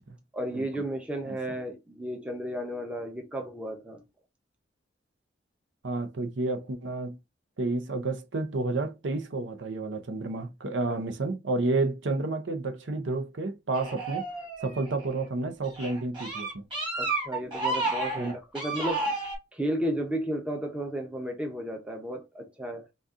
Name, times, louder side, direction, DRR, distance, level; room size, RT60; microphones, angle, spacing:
voice 1, 0.3-4.0 10.9-11.0 17.0-19.2 19.5-22.9, equal, 5° right, 0.7 m, -33 dB
voice 2, 5.8-7.2 7.6-14.3 14.6-16.7 18.2-18.3, right 2 dB, 80° right, 0.6 m, -30 dB
sound 1, 13.7-15.1 15.6-19.4, right 3 dB, 25° right, 2.0 m, -31 dB
4.0 x 2.4 x 3.6 m
head